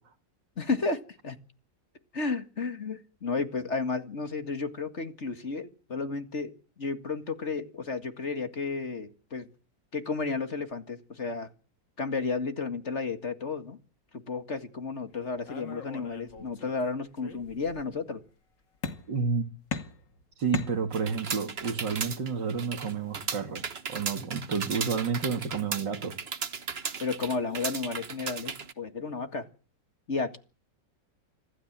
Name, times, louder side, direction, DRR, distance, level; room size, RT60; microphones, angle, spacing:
voice 1, 0.6-1.4 2.1-9.5 9.9-11.5 12.0-13.8 14.1-18.2 27.0-29.5 30.1-30.4, left 4 dB, 40° left, 2.1 m, -32 dB
sound 1, 15.5-16.8 17.2-17.9 18.8-19.3 19.7-21.3, left 6 dB, 85° left, 3.1 m, -39 dB
voice 2, 19.1-19.4 20.4-23.6 23.9-26.1, right 5 dB, 80° right, 3.2 m, -30 dB
sound 2, 20.9-28.7, right 6 dB, 40° right, 1.3 m, -36 dB
26.0 x 16.5 x 7.5 m
omnidirectional pair, 1.9 m